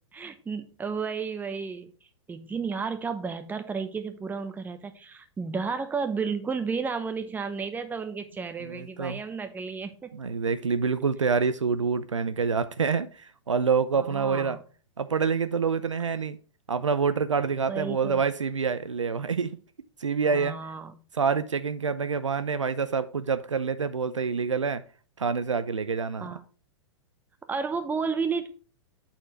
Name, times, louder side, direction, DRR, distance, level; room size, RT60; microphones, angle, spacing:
voice 1, 0.1-1.9 2.3-10.1 14.0-14.6 17.7-18.3 20.3-21.0 26.2-26.4 27.5-28.5, right 5 dB, 10° right, 0.9 m, -32 dB
voice 2, 8.6-9.2 10.1-14.6 15.0-16.4 16.7-19.6 20.0-20.6 21.1-24.8 25.2-26.3, right 5 dB, 85° right, 0.6 m, -27 dB
8.0 x 4.4 x 4.3 m
figure-of-eight pair, 105°, 15 cm